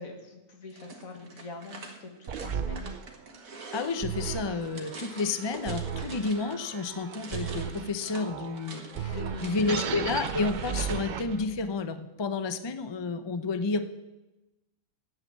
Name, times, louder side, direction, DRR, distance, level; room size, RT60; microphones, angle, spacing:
voice 1, 0.0-2.9 9.0-9.8, left 3 dB, 65° left, 4 dB, 2.1 m, -43 dB
sound 1, 0.7-6.7 6.9-10.5, right 3 dB, 65° right, 2.0 m, -45 dB
sound 2, 2.3-11.7, right 7 dB, 90° right, 0.4 m, -36 dB
voice 2, 3.7-13.8, left 4 dB, 40° left, 10 dB, 0.3 m, -31 dB
11.5 x 8.1 x 7.3 m, 1.0 s
omnidirectional pair, 1.6 m